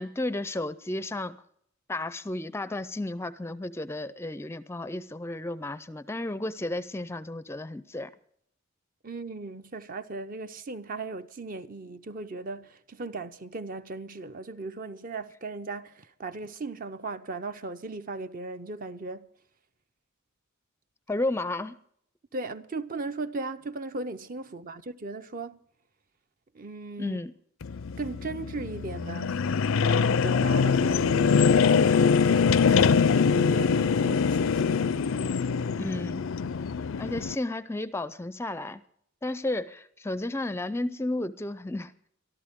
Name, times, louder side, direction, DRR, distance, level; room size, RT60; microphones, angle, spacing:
voice 1, 0.0-1.4 1.9-8.1 21.1-21.7 27.0-27.3 35.8-36.2 37.0-38.8 39.2-41.9, left 2 dB, 10° left, 0.5 m, -32 dB
voice 2, 9.0-19.3 22.3-25.6 26.5-27.2 28.0-29.8 30.0-35.4, right 3 dB, 40° right, 0.7 m, -38 dB
sound 1, 27.6-37.4, left 5 dB, 70° left, 0.5 m, -23 dB
23.5 x 13.5 x 3.6 m
head